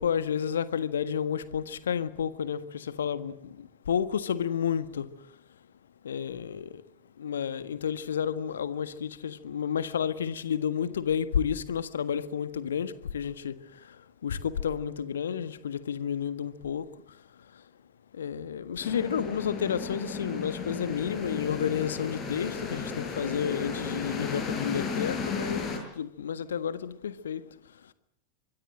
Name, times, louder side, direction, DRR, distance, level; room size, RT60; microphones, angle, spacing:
voice 1, 0.0-3.3 3.9-5.0 6.0-6.7 7.2-13.5 14.2-16.8 18.2-27.4, left 8 dB, 65° left, 1.5 m, -31 dB
sound 1, 18.8-25.8, left 5 dB, 30° left, 7.2 m, -34 dB
24.5 x 22.5 x 7.6 m
figure-of-eight pair, 90°, 0 cm